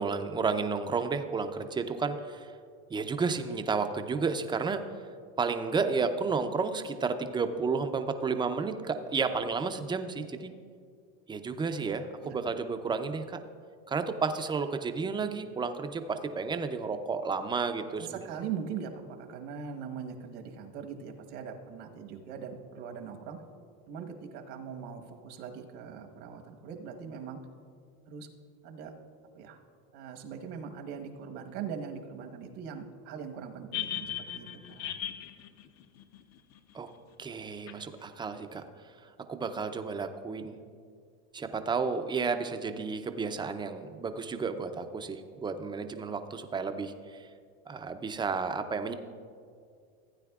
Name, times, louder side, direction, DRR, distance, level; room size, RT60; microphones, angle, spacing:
voice 1, 0.0-2.5 2.9-4.8 5.4-10.5 11.3-13.4 13.9-18.2 36.7-36.9 37.2-38.6 39.3-40.6 41.3-47.3 47.7-48.9, right 5 dB, 15° right, 8 dB, 0.4 m, -32 dB
voice 2, 18.0-23.4 23.9-27.4 28.1-28.3 28.6-28.9 29.3-29.6 29.9-34.9, right 7 dB, 70° right, 4 dB, 1.3 m, -41 dB
sound 1, 33.7-36.7 37.7-37.8, left 11 dB, 50° left, 0.7 m, -38 dB
16.0 x 9.1 x 2.4 m, 2.2 s
supercardioid pair, 125°, 35 cm